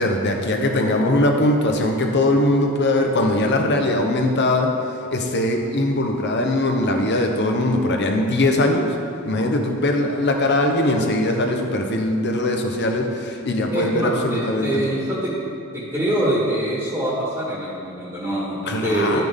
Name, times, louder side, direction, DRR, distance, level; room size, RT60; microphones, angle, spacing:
voice 1, 0.0-4.7 5.1-8.9 9.2-14.9 18.7-19.2, left 1 dB, 55° left, 3 dB, 0.9 m, -21 dB
voice 2, 13.7-15.3 15.7-19.2, right 1 dB, 10° right, -7 dB, 1.5 m, -24 dB
11.5 x 6.0 x 3.6 m, 2.5 s
head